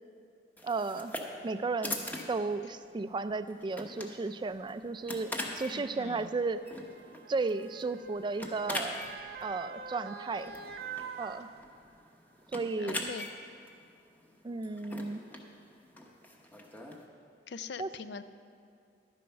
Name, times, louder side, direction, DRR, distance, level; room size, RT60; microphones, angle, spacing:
sound 1, 0.6-17.1, left 1 dB, 10° left, 1.0 m, -43 dB
voice 1, 0.6-1.1 1.4-6.6 7.3-9.1 9.4-10.5 11.2-11.5 12.5-13.1 14.4-15.2 17.8-17.9, right 3 dB, 25° right, 12 dB, 0.3 m, -34 dB
Motor vehicle (road) / Siren, 2.1-2.2 3.2-3.4 4.5-12.1 12.5-12.6, right 6 dB, 60° right, 0.7 m, -46 dB
voice 2, 5.7-6.3 12.8-13.3 17.5-18.2, left 5 dB, 65° left, 12 dB, 0.5 m, -42 dB
11.5 x 9.3 x 5.7 m, 2.3 s
head